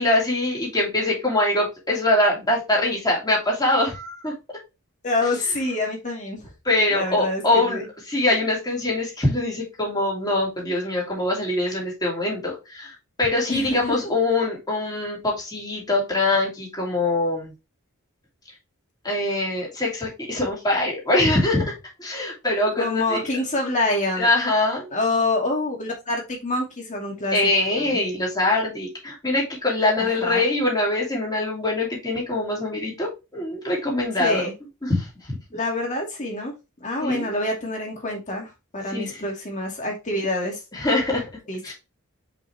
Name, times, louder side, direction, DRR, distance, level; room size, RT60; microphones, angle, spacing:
voice 1, 0.0-4.3 6.6-7.8 8.1-17.5 19.0-23.3 24.2-24.9 27.3-34.5 34.8-35.4 37.0-37.3 38.9-39.4 40.7-41.3 41.6-41.7, left 2 dB, 20° left, -3 dB, 2.9 m, -23 dB
voice 2, 5.0-6.5 6.9-7.8 13.5-14.0 22.8-24.3 24.9-27.4 27.8-28.0 30.0-30.5 34.2-34.5 35.5-36.5 36.8-40.6 41.5-41.7, left 2 dB, 35° left, 0 dB, 2.3 m, -26 dB
5.4 x 5.3 x 3.4 m, 0.26 s
head